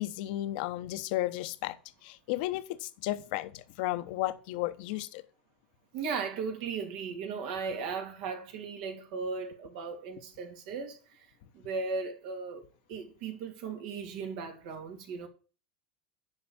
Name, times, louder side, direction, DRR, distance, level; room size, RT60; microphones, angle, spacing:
voice 1, 0.0-1.8 2.0-5.2, left 16 dB, 65° left, 1.0 m, -33 dB
voice 2, 5.9-11.3 11.5-12.6 12.9-15.3, right 5 dB, 65° right, 2.8 m, -37 dB
10.0 x 5.1 x 7.3 m
hypercardioid pair, 95°, 5 cm